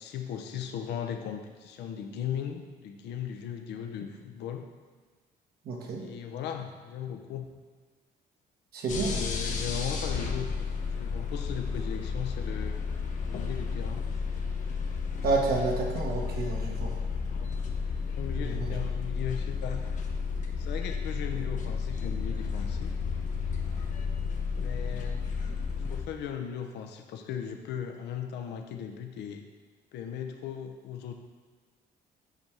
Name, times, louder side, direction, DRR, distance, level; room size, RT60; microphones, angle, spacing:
voice 1, 0.0-4.7 6.0-7.5 8.9-10.5 11.0-12.8 13.3-14.0 17.3-17.5 18.2-19.9 20.6-23.0 24.5-25.2 25.9-29.4 29.9-31.1, left 8 dB, 80° left, 5 dB, 0.7 m, -37 dB
voice 2, 5.6-6.0 8.7-9.2 15.2-16.9 18.3-18.7, right 3 dB, 65° right, 0 dB, 1.4 m, -30 dB
sound 1, 8.9-26.0, left 5 dB, 45° left, 0.8 m, -32 dB
8.1 x 3.4 x 6.1 m, 1.5 s
cardioid pair, 145°, 17 cm